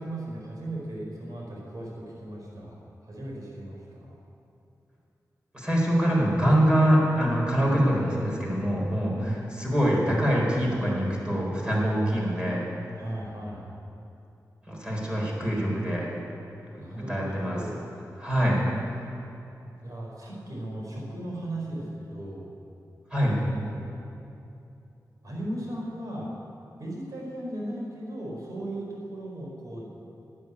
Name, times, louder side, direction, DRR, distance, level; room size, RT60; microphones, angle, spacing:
voice 1, 0.0-4.1 9.0-9.5 13.0-13.7 16.8-17.9 19.8-22.5 23.5-23.9 25.2-26.3 26.8-29.8, right 1 dB, 60° right, -3 dB, 4.5 m, -37 dB
voice 2, 5.5-12.6 14.7-16.0 17.1-17.6 18.2-18.6 23.1-23.4, equal, 15° right, -4 dB, 4.2 m, -24 dB
12.5 x 9.3 x 9.8 m, 2.8 s
wide cardioid pair, 110°, 7 cm